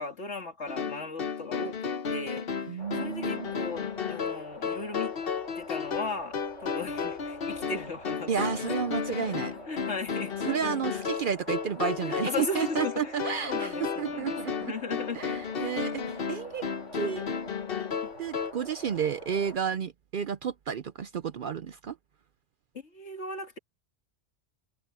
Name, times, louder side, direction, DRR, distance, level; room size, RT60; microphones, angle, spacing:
voice 1, 0.0-5.1 5.5-8.7 9.1-10.4 12.0-15.7 22.8-23.6, left 3 dB, 70° left, 2.8 m, -37 dB
sound 1, 0.7-18.5, left 6 dB, 55° left, 1.1 m, -33 dB
voice 2, 2.7-3.5 8.3-9.5 10.4-14.7 15.2-15.3 15.6-16.6 16.9-17.2 18.2-22.0, right 7 dB, 55° right, 0.6 m, -31 dB
sound 2, 2.8-19.6, left 1 dB, 90° left, 5.2 m, -46 dB
omnidirectional pair, 1.2 m